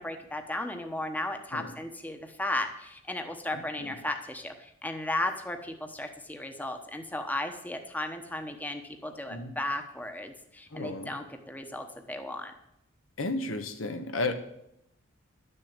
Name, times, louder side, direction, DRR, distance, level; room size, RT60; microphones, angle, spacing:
voice 1, 0.0-12.5, left 1 dB, 10° left, 5 dB, 1.0 m, -35 dB
voice 2, 10.7-11.1 13.2-14.3, left 2 dB, 90° left, 7 dB, 1.3 m, -33 dB
12.0 x 6.8 x 8.8 m, 0.81 s
head